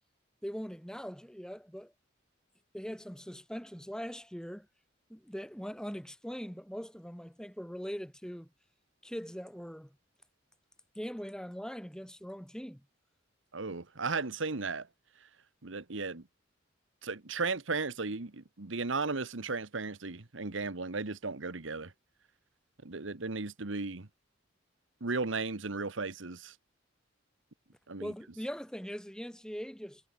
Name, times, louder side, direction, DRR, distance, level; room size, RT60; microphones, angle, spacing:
voice 1, 0.4-1.9 2.7-4.7 5.1-8.5 9.0-10.0 11.0-12.8 28.0-30.0, equal, 5° left, 7.4 m, -41 dB
voice 2, 13.5-14.9 15.2-15.3 15.6-16.3 17.0-21.9 22.8-24.1 25.0-26.5 27.9-28.1, right 4 dB, 75° right, 1.3 m, -35 dB
head